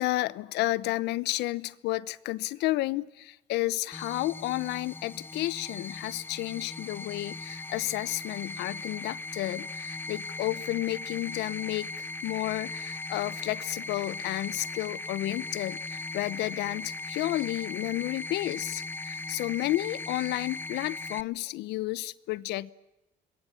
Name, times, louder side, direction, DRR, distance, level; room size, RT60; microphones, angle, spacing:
voice 1, 0.0-22.7, left 18 dB, 85° left, 0.8 m, -31 dB
sound 1, 3.9-21.2, left 2 dB, 10° left, 0.8 m, -38 dB
27.0 x 22.0 x 8.5 m
cardioid pair, 110°, 17 cm